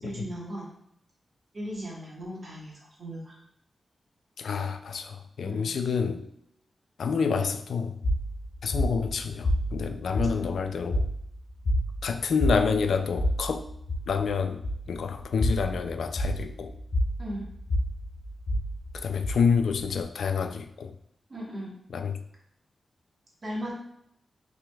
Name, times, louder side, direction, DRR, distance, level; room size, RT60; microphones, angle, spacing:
voice 1, 0.0-0.7 1.5-3.4 5.4-5.7 10.1-10.3 17.2-17.5 21.3-21.8 23.4-23.7, equal, 35° right, -3 dB, 1.2 m, -37 dB
voice 2, 4.4-6.2 7.0-7.9 8.6-11.1 12.0-13.7 14.1-16.7 18.9-20.9 21.9-22.2, left 6 dB, 90° left, 8 dB, 0.3 m, -28 dB
sound 1, 8.0-20.0, equal, 65° left, 1.3 m, -30 dB
5.8 x 3.4 x 2.3 m, 0.74 s
wide cardioid pair, 175°, 0 cm